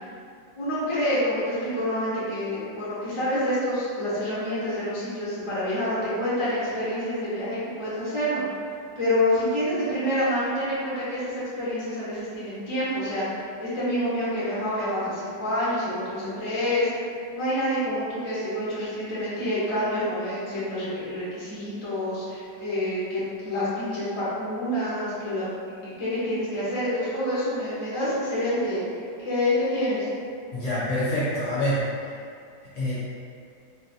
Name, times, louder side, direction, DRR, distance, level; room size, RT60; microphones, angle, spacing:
voice 1, 0.5-8.4 9.0-30.1, left 1 dB, 40° left, -11 dB, 0.4 m, -27 dB
voice 2, 30.5-32.1 32.7-33.0, equal, 55° left, -11 dB, 0.9 m, -26 dB
3.9 x 2.1 x 2.7 m, 2.3 s
omnidirectional pair, 2.0 m